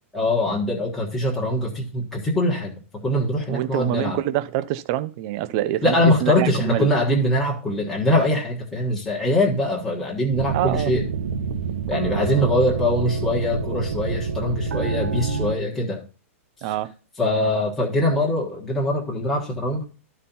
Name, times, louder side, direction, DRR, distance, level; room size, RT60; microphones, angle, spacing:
voice 1, 0.1-2.7 3.0-4.2 5.8-11.0 11.9-16.0 17.2-19.9, left 1 dB, ahead, 1.3 m, -22 dB
voice 2, 3.5-6.0 6.2-6.9 10.5-10.9 16.6-16.9, right 14 dB, 25° right, 0.5 m, -25 dB
sound 1, 10.3-15.5, right 5 dB, 80° right, 1.1 m, -27 dB
12.5 x 4.3 x 5.4 m
hypercardioid pair, 175°, 8 cm